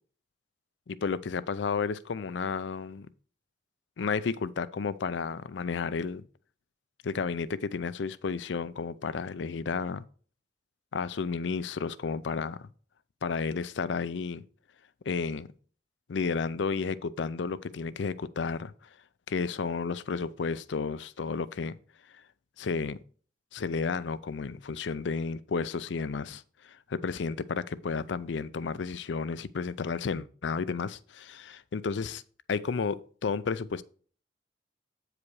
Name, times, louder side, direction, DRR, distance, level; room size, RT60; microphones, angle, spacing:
voice 1, 0.9-3.1 4.0-6.2 7.0-10.0 10.9-12.7 13.2-14.4 15.1-15.5 16.1-18.7 19.3-21.8 22.6-23.0 23.5-32.2 32.5-33.8, left 5 dB, 90° left, 0.5 m, -32 dB
8.5 x 4.9 x 4.7 m
head